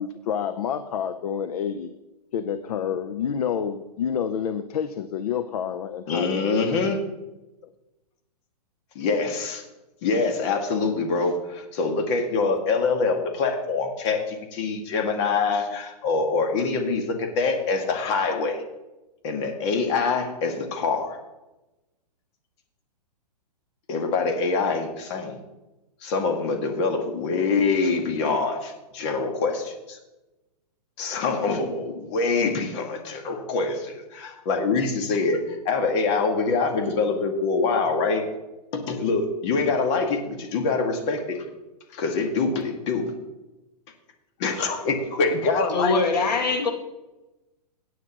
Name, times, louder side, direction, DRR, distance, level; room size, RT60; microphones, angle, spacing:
voice 1, 0.0-1.9 2.3-6.5, left 8 dB, 65° left, 10 dB, 0.8 m, -28 dB
voice 2, 6.1-7.0 9.0-9.6 10.0-18.6 19.2-21.2 23.9-25.4 26.0-30.0 31.0-35.4 35.7-38.2 38.7-41.4 41.9-43.1 44.4-46.5, left 4 dB, 45° left, 4 dB, 2.0 m, -25 dB
voice 3, 45.7-46.7, left 4 dB, 80° left, 1 dB, 2.6 m, -22 dB
17.0 x 9.3 x 3.1 m, 1.0 s
hypercardioid pair, 135°, 21 cm